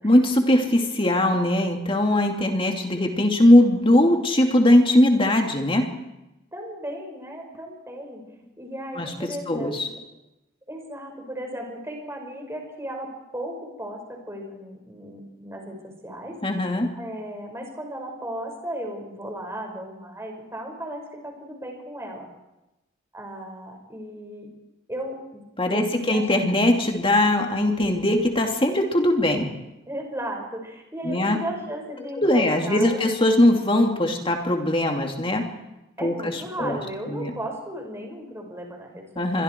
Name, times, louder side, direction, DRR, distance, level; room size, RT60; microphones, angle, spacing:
voice 1, 0.0-5.9 9.0-9.1 9.5-9.9 16.4-16.9 25.6-29.5 31.0-31.4 32.2-35.5 36.0-36.8 37.1-37.3 39.2-39.4, left 1 dB, 30° left, 3 dB, 2.8 m, -20 dB
voice 2, 6.5-8.2 8.6-10.0 10.7-16.4 17.0-22.3 23.1-24.5 24.9-25.4 25.7-26.3 29.9-33.1 36.0-39.4, right 1 dB, 15° right, 2 dB, 5.4 m, -35 dB
26.0 x 23.0 x 4.6 m, 0.94 s
head